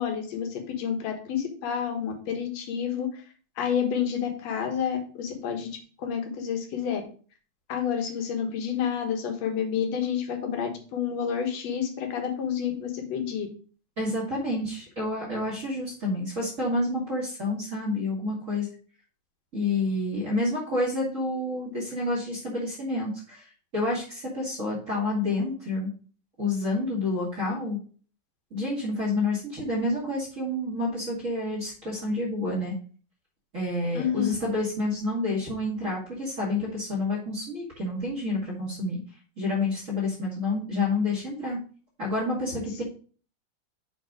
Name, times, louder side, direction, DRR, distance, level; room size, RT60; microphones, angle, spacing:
voice 1, 0.0-3.1 3.6-7.0 7.7-13.5 33.9-34.4, left 8 dB, 65° left, 4 dB, 2.4 m, -29 dB
voice 2, 14.0-18.7 19.5-23.4 23.7-25.9 26.4-27.8 28.5-32.7 33.5-39.0 39.4-41.6 42.0-42.8, left 2 dB, 25° right, -4 dB, 2.4 m, -29 dB
8.2 x 4.0 x 4.8 m, 0.40 s
omnidirectional pair, 3.4 m